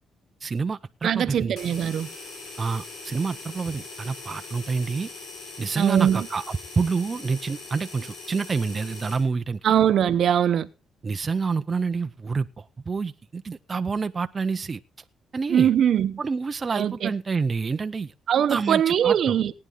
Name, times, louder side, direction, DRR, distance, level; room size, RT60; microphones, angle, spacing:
voice 1, 0.4-1.6 2.6-5.1 5.6-9.6 11.0-14.8 15.3-15.7 16.2-18.1 18.5-19.4, right 4 dB, 35° right, 0.6 m, -28 dB
voice 2, 1.0-2.1 5.8-6.3 9.6-10.7 15.5-16.2 16.7-17.1 18.3-19.5, right 9 dB, 65° right, 0.9 m, -21 dB
sound 1, 1.6-9.3, left 3 dB, 75° left, 6.9 m, -41 dB
17.5 x 9.7 x 3.8 m
cardioid pair, 90°, 0 cm